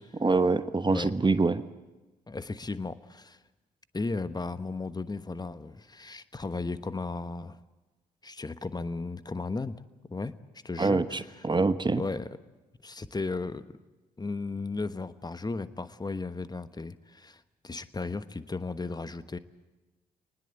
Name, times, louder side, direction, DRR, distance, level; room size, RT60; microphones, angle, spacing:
voice 1, 0.1-1.6 10.8-12.0, right 3 dB, 20° right, 12 dB, 1.1 m, -25 dB
voice 2, 2.3-3.4 3.9-7.6 8.2-9.8 10.1-10.4 10.6-11.2 12.0-12.3 12.8-13.7 14.2-19.4, left 3 dB, 20° left, 13 dB, 1.2 m, -35 dB
25.5 x 20.0 x 7.8 m, 1.2 s
figure-of-eight pair, 45°, 20 cm